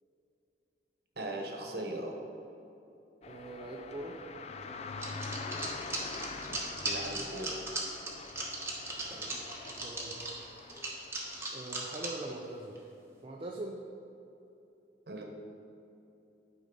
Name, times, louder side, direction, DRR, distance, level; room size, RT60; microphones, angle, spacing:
voice 1, 1.2-2.1 6.5-7.6 15.1-15.2, right 1 dB, 60° right, 1 dB, 1.1 m, -39 dB
sound 1, 3.2-11.5, left 4 dB, 40° left, 0.4 m, -44 dB
voice 2, 3.3-4.2 9.0-9.4 9.7-10.3 11.5-12.8 13.2-13.8, right 1 dB, 30° right, 0 dB, 0.5 m, -42 dB
sound 2, 5.0-12.3 12.7-12.8 13.1-13.2, right 2 dB, 15° right, 1.1 m, -38 dB
11.0 x 5.2 x 3.9 m, 2.9 s
head